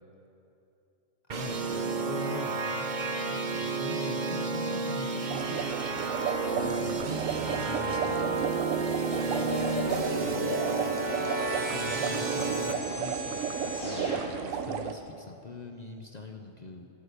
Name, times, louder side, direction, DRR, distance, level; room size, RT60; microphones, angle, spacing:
voice 1, 1.3-2.8 3.2-5.7 6.6-6.9 7.4-8.4 10.1-10.9 11.4-14.1 14.4-16.9, left 3 dB, 40° left, 4 dB, 0.8 m, -42 dB
sound 1, 1.3-12.7, right 4 dB, 40° right, 0.9 m, -31 dB
sound 2, 5.3-14.9, right 7 dB, 85° right, 1.1 m, -34 dB
voice 2, 6.4-7.5 9.1-9.8 11.8-12.4, right 1 dB, 70° right, 0 dB, 2.3 m, -45 dB
sound 3, 9.1-14.2, left 1 dB, 55° left, 4.1 m, -37 dB
13.0 x 11.5 x 6.8 m, 2.8 s
omnidirectional pair, 1.3 m